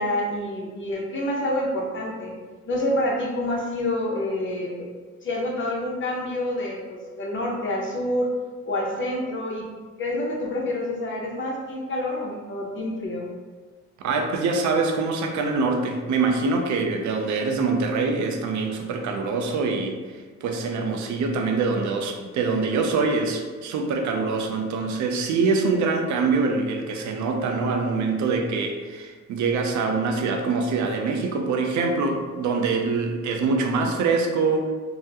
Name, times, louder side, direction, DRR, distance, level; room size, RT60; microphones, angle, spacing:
voice 1, 0.0-2.3 2.7-4.8 5.2-8.3 8.7-9.6 10.0-13.3, left 1 dB, 40° left, -1 dB, 0.7 m, -27 dB
voice 2, 14.0-34.7, right 4 dB, 70° right, 3 dB, 0.5 m, -24 dB
3.6 x 2.1 x 2.8 m, 1.4 s
cardioid pair, 90°, 30 cm